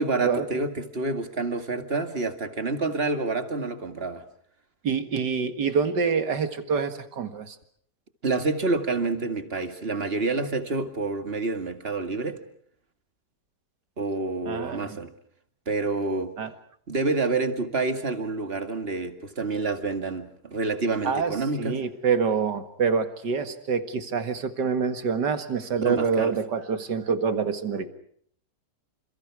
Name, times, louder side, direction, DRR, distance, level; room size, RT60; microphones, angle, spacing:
voice 1, 0.0-4.2 8.2-12.4 14.0-15.1 15.7-16.3 16.9-21.8 25.8-26.3, right 3 dB, 35° right, 7 dB, 2.3 m, -28 dB
voice 2, 4.8-7.6 14.5-15.0 16.4-16.5 21.0-27.9, right 6 dB, 90° right, 9 dB, 2.5 m, -26 dB
29.5 x 27.5 x 4.8 m, 0.63 s
omnidirectional pair, 1.8 m